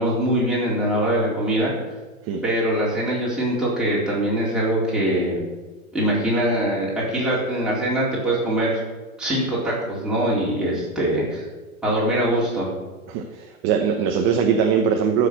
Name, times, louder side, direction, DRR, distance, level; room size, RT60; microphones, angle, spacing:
voice 1, 0.0-1.7 2.4-5.4 5.9-8.8 9.2-11.4 11.8-12.7, right 1 dB, ahead, -8 dB, 4.1 m, -22 dB
voice 2, 13.1-15.3, right 7 dB, 25° right, 3 dB, 1.0 m, -21 dB
14.5 x 6.7 x 6.4 m, 1.3 s
hypercardioid pair, 145°, 44 cm